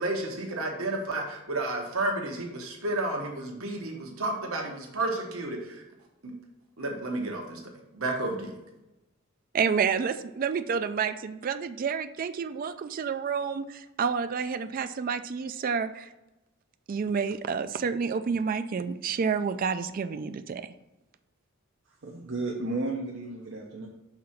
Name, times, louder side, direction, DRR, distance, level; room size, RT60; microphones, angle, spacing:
voice 1, 0.0-5.8 6.2-6.3 6.8-8.5, right 2 dB, 75° right, 1 dB, 1.1 m, -31 dB
voice 2, 9.5-16.1 16.9-20.6, right 6 dB, 40° right, 10 dB, 0.3 m, -29 dB
voice 3, 22.0-23.9, right 2 dB, 60° right, -1 dB, 0.8 m, -33 dB
5.9 x 3.7 x 5.8 m, 0.97 s
head